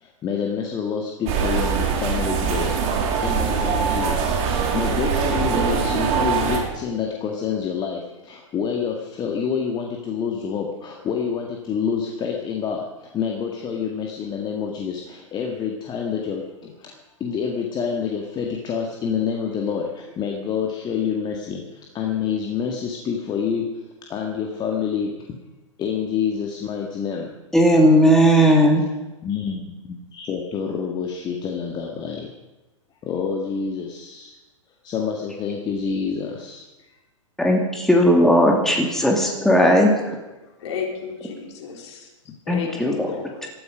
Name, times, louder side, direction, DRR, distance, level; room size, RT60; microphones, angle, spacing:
voice 1, 0.0-2.8 3.2-16.9 17.2-23.7 24.1-25.1 25.8-27.3 29.2-32.3 33.0-34.4 34.8-36.6, left 6 dB, 25° left, 0 dB, 2.0 m, -27 dB
sound 1, 1.3-6.6, right 6 dB, 40° right, 3.3 m, -22 dB
voice 2, 27.5-28.8 37.4-39.9 42.5-43.1, equal, ahead, 0 dB, 2.6 m, -16 dB
voice 3, 40.4-42.1 42.5-43.5, left 6 dB, 60° left, 2 dB, 3.9 m, -32 dB
20.0 x 13.0 x 5.2 m, 1.1 s
hypercardioid pair, 110°, 17 cm